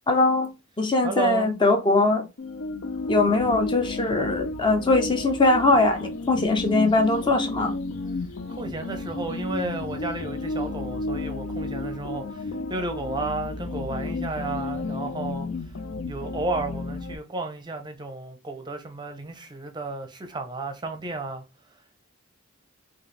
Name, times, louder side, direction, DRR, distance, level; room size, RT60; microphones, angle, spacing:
voice 1, 0.1-0.5 0.8-2.2 3.1-7.7, left 2 dB, 25° left, 0.5 m, -21 dB
voice 2, 1.0-1.5 8.5-15.5 16.1-21.4, right 3 dB, 20° right, 0.6 m, -32 dB
sound 1, 2.4-17.1, left 2 dB, 75° left, 0.5 m, -32 dB
4.2 x 2.5 x 3.2 m
head